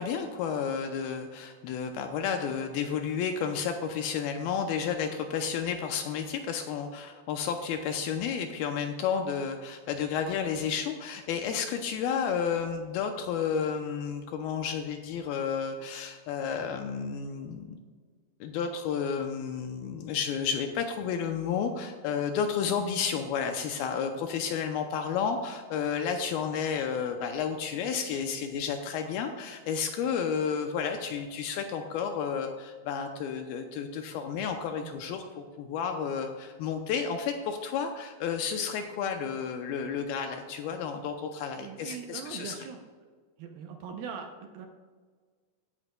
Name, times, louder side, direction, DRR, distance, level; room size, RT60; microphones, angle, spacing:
voice 1, 0.0-17.8 18.4-42.6, left 7 dB, 80° left, 5 dB, 2.3 m, -31 dB
voice 2, 41.6-43.1 43.4-44.7, right 6 dB, 75° right, 4 dB, 2.3 m, -41 dB
15.5 x 9.2 x 2.2 m, 1.5 s
omnidirectional pair, 4.7 m